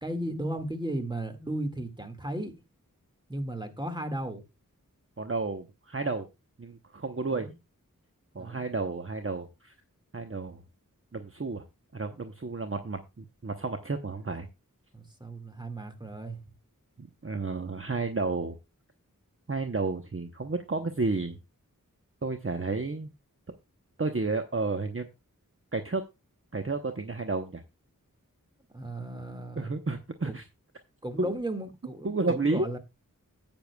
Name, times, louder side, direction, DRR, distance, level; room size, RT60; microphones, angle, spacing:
voice 1, 0.0-2.6 3.3-4.4 7.3-7.5 8.4-8.6 14.9-16.4 28.7-29.8 30.2-30.4 31.0-32.8, right 1 dB, 15° right, 1.9 m, -35 dB
voice 2, 5.2-6.3 6.6-7.5 8.3-9.7 10.1-10.6 11.1-11.6 11.9-14.5 17.0-18.6 19.5-21.4 22.2-23.1 24.0-25.1 25.7-26.0 26.5-27.6 29.6-30.4 31.2-31.3 32.0-32.7, right 3 dB, 40° right, 0.9 m, -31 dB
13.0 x 8.8 x 2.3 m
wide cardioid pair, 45°, 33 cm